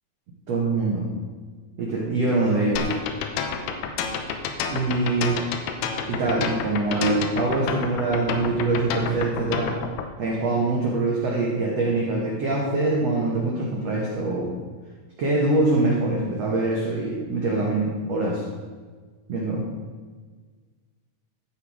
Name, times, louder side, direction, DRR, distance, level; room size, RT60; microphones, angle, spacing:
voice 1, 0.5-1.1 1.8-2.9 4.7-5.4 6.1-9.7 10.2-14.5 15.2-18.4 19.3-19.6, right 2 dB, 80° right, -3 dB, 1.4 m, -24 dB
sound 1, 2.8-10.1, left 6 dB, 75° left, 2.6 m, -29 dB
12.5 x 7.2 x 4.8 m, 1.5 s
omnidirectional pair, 5.1 m